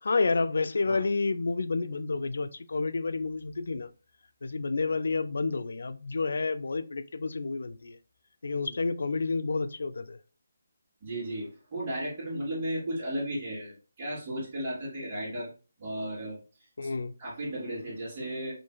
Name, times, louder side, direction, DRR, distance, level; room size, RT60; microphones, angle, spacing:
voice 1, 0.0-3.9 4.4-8.0 8.4-10.2 16.8-17.1, left 3 dB, 70° left, 0.4 m, -30 dB
voice 2, 11.0-15.5 15.8-16.4 16.8-16.9 17.2-18.5, right 1 dB, 35° right, 2.1 m, -35 dB
5.1 x 2.9 x 2.3 m
hypercardioid pair, 165°, 0 cm